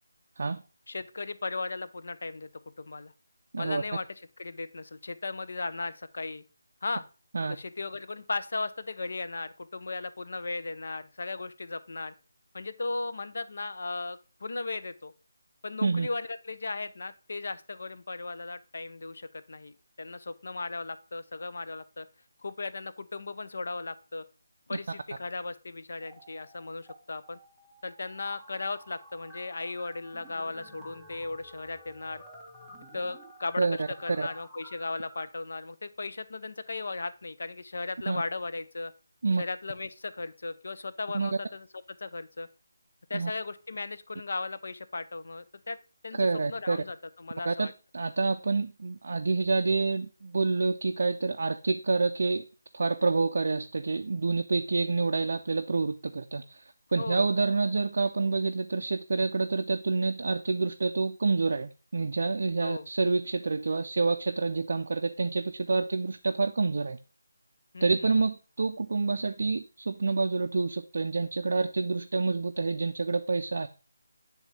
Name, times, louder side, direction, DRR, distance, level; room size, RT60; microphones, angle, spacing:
voice 1, 0.9-2.5 2.8-3.1 3.6-6.4 6.8-7.0 7.4-12.1 12.5-15.1 15.6-22.1 22.4-24.2 24.7-27.4 27.8-32.2 32.9-38.9 39.4-42.5 43.1-45.8 46.0-47.7 57.0-57.3 62.6-62.9 67.7-68.1, left 3 dB, 60° left, 0.5 m, -36 dB
sound 1, 26.0-27.0 27.2-35.2, equal, ahead, 0.6 m, -51 dB
voice 2, 33.6-33.9 34.2-34.3 38.1-38.2 39.2-39.4 41.1-41.3 43.1-43.3 46.2-46.8 47.5-52.4 52.7-56.6 56.9-67.0 67.8-73.7, right 3 dB, 55° right, 0.3 m, -28 dB
8.1 x 3.5 x 4.0 m
figure-of-eight pair, 170°, 0 cm